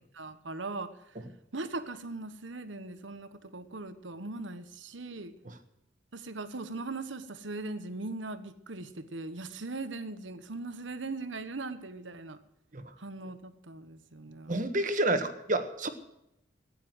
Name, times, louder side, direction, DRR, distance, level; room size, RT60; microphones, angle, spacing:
voice 1, 0.1-0.9 1.5-5.3 6.1-12.4 13.0-14.6, right 3 dB, 85° right, 12 dB, 1.3 m, -39 dB
voice 2, 14.5-15.9, right 1 dB, 45° right, 9 dB, 1.5 m, -29 dB
15.0 x 10.5 x 7.9 m, 0.83 s
head